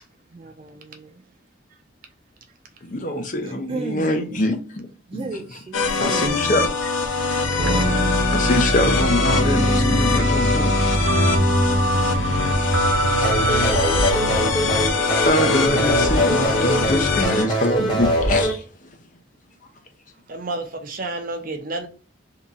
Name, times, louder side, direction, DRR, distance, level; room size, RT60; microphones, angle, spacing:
voice 1, 0.3-1.1 3.4-4.4 5.1-6.7, right 3 dB, 30° right, 0.3 m, -34 dB
voice 2, 2.8-4.9 5.1-5.6 6.0-6.9 8.3-10.9 11.3-11.4 15.2-18.6, left 1 dB, 40° left, 0.7 m, -24 dB
sound 1, 5.7-17.4, left 4 dB, 80° left, 0.8 m, -23 dB
sound 2, 7.6-14.4, equal, 70° right, 1.2 m, -22 dB
sound 3, 13.2-18.5, right 1 dB, 25° left, 1.1 m, -23 dB
voice 3, 20.3-21.9, right 2 dB, 45° right, 0.7 m, -30 dB
3.6 x 2.8 x 3.9 m
head